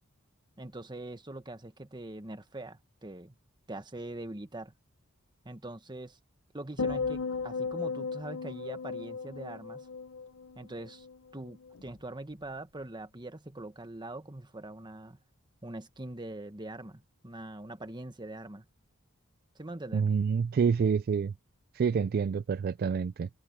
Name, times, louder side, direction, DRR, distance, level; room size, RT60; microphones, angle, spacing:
voice 1, 0.6-3.3 3.7-4.7 5.4-6.2 6.5-9.9 10.5-11.1 11.3-15.2 15.6-18.6 19.5-20.1, right 2 dB, 20° right, 1.5 m, -43 dB
sound 1, 6.8-11.2 11.5-11.9, left 4 dB, 70° left, 0.8 m, -36 dB
voice 2, 19.9-21.3 21.7-23.3, right 6 dB, 45° right, 0.3 m, -27 dB
head